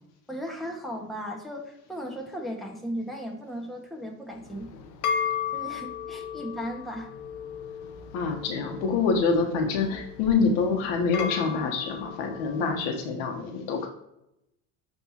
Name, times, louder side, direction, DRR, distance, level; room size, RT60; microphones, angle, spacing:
voice 1, 0.3-4.8 5.5-7.1, equal, ahead, -1 dB, 1.6 m, -36 dB
sound 1, 4.4-12.9, left 7 dB, 55° left, 0.8 m, -35 dB
voice 2, 8.1-13.9, left 4 dB, 80° left, 3 dB, 1.3 m, -26 dB
10.5 x 3.5 x 2.9 m, 0.83 s
supercardioid pair, 95°, 36 cm